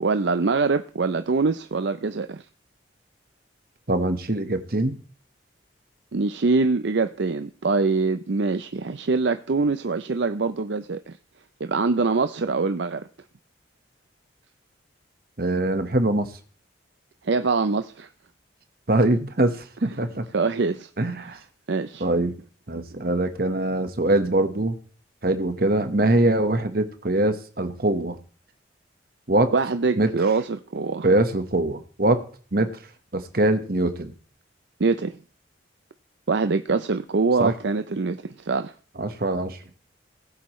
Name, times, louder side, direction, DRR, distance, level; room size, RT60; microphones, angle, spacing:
voice 1, 0.0-2.4 6.1-11.2 11.6-13.0 17.2-18.1 20.3-20.9 21.7-22.1 29.5-31.1 34.8-35.2 36.3-38.7, right 4 dB, 65° right, 0.6 m, -24 dB
voice 2, 3.9-5.0 15.4-16.3 18.9-20.2 21.0-21.4 22.0-22.3 22.7-24.8 25.2-28.2 29.3-29.5 30.0-30.1 31.0-32.2 32.5-32.7 33.1-34.1 37.4-37.5 39.0-39.6, right 1 dB, 50° right, 1.3 m, -23 dB
20.0 x 8.4 x 3.1 m
head